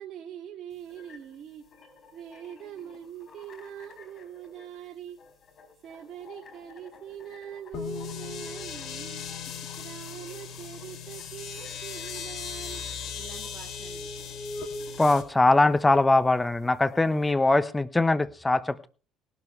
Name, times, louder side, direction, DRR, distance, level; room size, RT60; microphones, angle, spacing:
voice 1, 0.0-1.6 2.1-5.2 5.8-9.2 9.8-12.8 13.2-14.1, right 10 dB, 55° right, 1 dB, 2.0 m, -43 dB
sound 1, 0.7-17.3, left 4 dB, 50° left, 4.1 m, -54 dB
sound 2, 7.7-15.2, left 5 dB, 65° left, 2.6 m, -37 dB
voice 2, 15.0-18.9, left 2 dB, 15° left, 14 dB, 1.0 m, -22 dB
18.5 x 12.0 x 3.3 m, 0.37 s
supercardioid pair, 85°, 0 cm